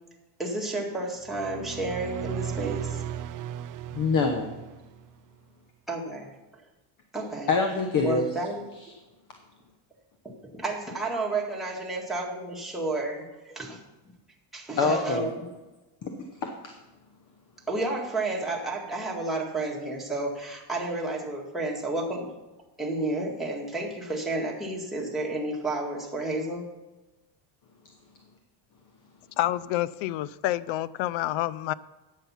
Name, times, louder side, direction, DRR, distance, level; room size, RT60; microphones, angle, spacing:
voice 1, 0.4-3.0 5.9-6.3 7.1-7.5 8.0-8.7 10.2-13.8 14.5-15.5 17.7-22.3 22.8-26.7, right 2 dB, ahead, -4 dB, 1.8 m, -31 dB
sound 1, 1.2-5.1, right 10 dB, 45° right, 0.5 m, -36 dB
voice 2, 3.9-4.5 7.5-8.3 14.8-15.3 16.0-16.1 16.4-16.7, left 4 dB, 40° left, 4 dB, 1.0 m, -25 dB
voice 3, 29.4-31.7, left 14 dB, 70° left, 19 dB, 0.5 m, -28 dB
9.0 x 7.5 x 5.7 m, 1.1 s
cardioid pair, 120°, 49 cm